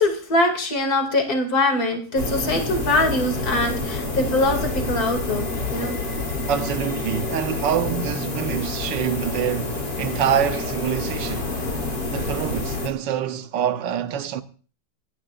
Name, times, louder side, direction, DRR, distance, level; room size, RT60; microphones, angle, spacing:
voice 1, 0.0-5.4 5.7-6.0, left 2 dB, 55° left, 3.1 m, -22 dB
sound 1, 2.2-12.9, left 3 dB, 80° left, 3.8 m, -28 dB
voice 2, 6.5-11.5 12.1-14.4, right 9 dB, 85° right, 1.6 m, -26 dB
25.5 x 12.5 x 2.5 m
omnidirectional pair, 1.9 m